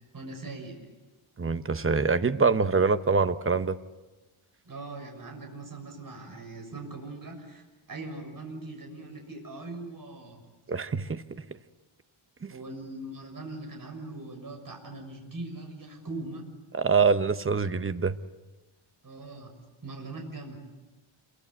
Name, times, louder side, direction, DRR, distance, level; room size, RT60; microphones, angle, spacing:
voice 1, 0.1-0.8 4.6-10.5 12.5-16.5 19.0-19.5 19.8-20.6, right 2 dB, 40° right, 3 dB, 6.5 m, -41 dB
voice 2, 1.4-3.8 10.7-11.4 12.4-12.5 16.7-18.2, right 5 dB, 25° right, 11 dB, 0.9 m, -25 dB
28.0 x 23.0 x 8.1 m, 1.1 s
wide cardioid pair, 145°, 50 cm